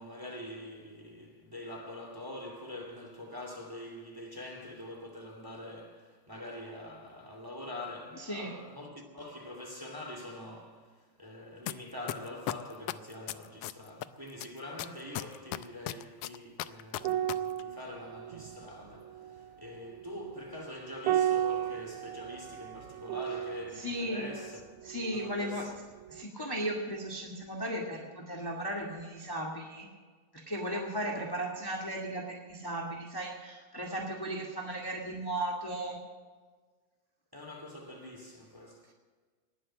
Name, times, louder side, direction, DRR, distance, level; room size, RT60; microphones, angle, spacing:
voice 1, 0.0-24.6 25.1-25.7 37.3-38.9, left 1 dB, 10° right, 1.9 m, -44 dB
voice 2, 8.2-8.5 23.7-24.3 24.8-25.7 26.1-29.9 30.3-36.0, right 1 dB, 10° left, 1.2 m, -36 dB
sound 1, 11.7-11.8 12.1-14.0 14.4-17.3 17.6-17.7, left 15 dB, 85° left, 1.3 m, -35 dB
sound 2, 17.0-25.7 26.0-26.2, right 11 dB, 90° right, 2.0 m, -35 dB
20.0 x 7.7 x 7.5 m
omnidirectional pair, 3.3 m